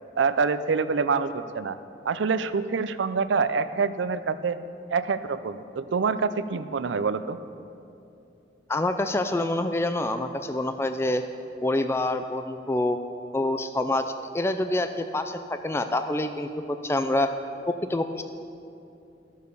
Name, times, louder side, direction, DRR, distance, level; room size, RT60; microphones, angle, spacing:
voice 1, 0.2-1.8 2.1-4.6 4.9-7.4, right 5 dB, 80° right, 12 dB, 0.4 m, -26 dB
voice 2, 8.7-11.2 11.6-13.0 13.3-17.3 17.7-18.2, left 1 dB, 15° left, 8 dB, 0.3 m, -26 dB
12.5 x 6.5 x 6.8 m, 2.7 s
head